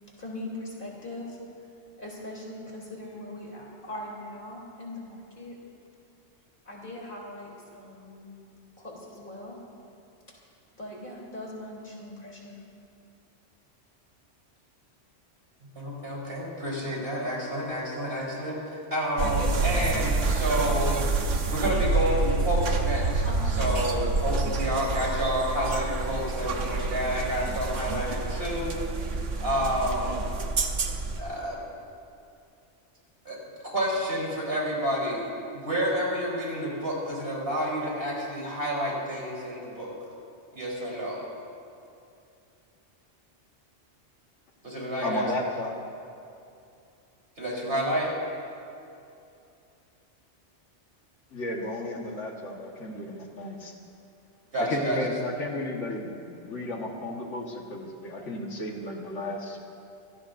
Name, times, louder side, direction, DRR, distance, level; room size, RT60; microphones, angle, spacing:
voice 1, 0.2-1.4 2.0-5.6 6.6-8.3 8.8-9.6 10.8-12.6 23.2-23.6, left 1 dB, 45° left, -3 dB, 3.5 m, -40 dB
voice 2, 15.8-21.0 21.5-23.3 23.6-29.1 29.4-30.2 31.2-31.6 33.2-33.4 33.7-35.2 35.5-39.9 40.5-41.2 44.6-45.2 47.4-48.1 54.5-55.0 56.3-56.4 56.7-56.8, equal, 55° right, -4 dB, 4.2 m, -29 dB
sound 1, 19.2-31.2, right 3 dB, 90° right, 1.4 m, -28 dB
voice 3, 45.0-45.7 51.3-53.7 54.6-56.1 56.4-59.6, left 2 dB, 85° left, 0 dB, 1.9 m, -33 dB
25.5 x 17.0 x 2.6 m, 2.6 s
omnidirectional pair, 1.2 m